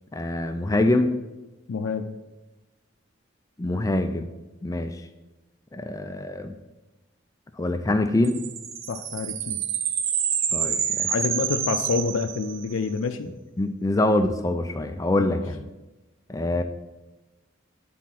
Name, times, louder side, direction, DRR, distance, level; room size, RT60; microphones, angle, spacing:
voice 1, 0.1-1.1 3.6-4.3 4.6-5.0 5.7-6.5 7.6-8.4 10.5-11.1 13.6-15.6 16.3-16.6, left 2 dB, 15° left, 7 dB, 0.3 m, -24 dB
voice 2, 1.7-2.2 8.9-9.6 11.1-13.3 15.2-15.4, left 4 dB, 80° left, 6 dB, 0.4 m, -28 dB
sound 1, 8.2-12.9, right 8 dB, 65° right, 0.6 m, -28 dB
9.2 x 4.2 x 5.8 m, 1.1 s
head